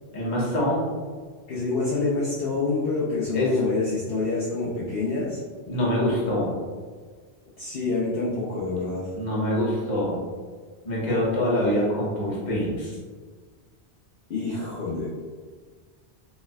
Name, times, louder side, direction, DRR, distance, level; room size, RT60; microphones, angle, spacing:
voice 1, 0.1-0.9 3.3-3.5 5.7-6.5 9.1-10.2 10.8-13.0, left 1 dB, 45° left, -6 dB, 1.1 m, -25 dB
voice 2, 1.5-5.4 7.6-9.1 14.3-15.1, left 3 dB, 60° left, -7 dB, 0.9 m, -27 dB
4.3 x 3.5 x 2.3 m, 1.5 s
omnidirectional pair, 1.1 m